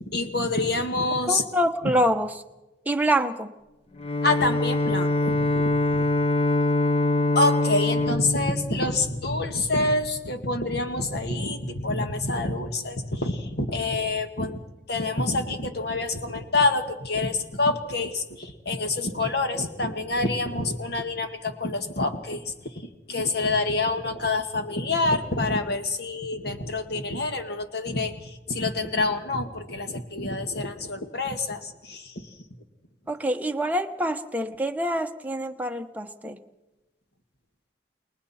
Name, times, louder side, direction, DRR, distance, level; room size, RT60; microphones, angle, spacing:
voice 1, 0.0-1.5 1.8-1.9 4.2-6.1 7.4-14.6 14.9-22.8 23.1-32.3, left 2 dB, 60° left, 6 dB, 1.9 m, -27 dB
voice 2, 1.3-2.3 2.9-3.5 33.1-36.4, right 1 dB, 10° right, 5 dB, 1.0 m, -25 dB
Bowed string instrument, 4.0-9.6, left 2 dB, 30° left, 0.9 m, -24 dB
29.5 x 21.0 x 4.3 m, 1.0 s
head